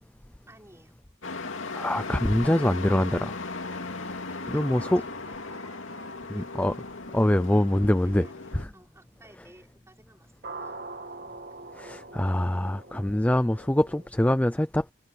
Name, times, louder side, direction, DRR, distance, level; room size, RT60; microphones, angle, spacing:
voice 1, 0.5-1.0 4.3-6.6 8.0-10.8, right 1 dB, 15° right, 5.9 m, -55 dB
Truck, 1.2-8.6, left 3 dB, 90° left, 2.5 m, -37 dB
sound 1, 1.2-5.2 6.6-6.7 10.4-14.1, right 3 dB, 50° right, 2.1 m, -44 dB
voice 2, 1.7-3.3 4.5-5.0 6.3-6.7 7.1-8.2 11.7-14.9, left 1 dB, 10° left, 0.5 m, -24 dB
head